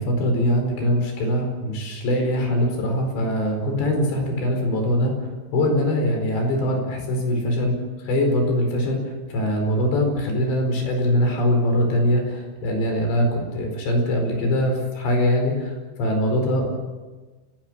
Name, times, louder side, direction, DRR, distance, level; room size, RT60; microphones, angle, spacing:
voice 1, 0.0-5.2 5.5-7.8 8.1-9.0 9.3-16.8, left 1 dB, 85° left, 3 dB, 7.0 m, -22 dB
29.5 x 17.0 x 7.6 m, 1.3 s
omnidirectional pair, 4.9 m